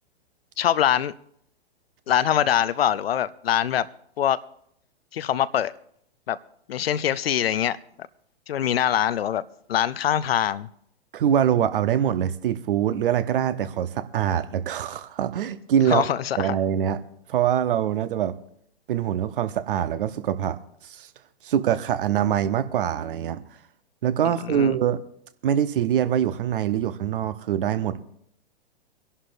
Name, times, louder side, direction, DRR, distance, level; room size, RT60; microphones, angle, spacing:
voice 1, 0.6-1.1 2.1-3.9 4.2-4.4 5.1-5.7 6.3-6.4 6.7-7.8 8.5-9.4 9.7-10.7 15.9-16.6 24.2-24.8, left 10 dB, 70° left, 0.7 m, -23 dB
voice 2, 11.1-16.1 16.4-17.0 17.3-18.4 18.9-21.1 21.4-23.5 24.0-25.0 25.4-28.0, right 9 dB, 60° right, 1.0 m, -24 dB
25.5 x 11.0 x 2.6 m
hypercardioid pair, 115°, 31 cm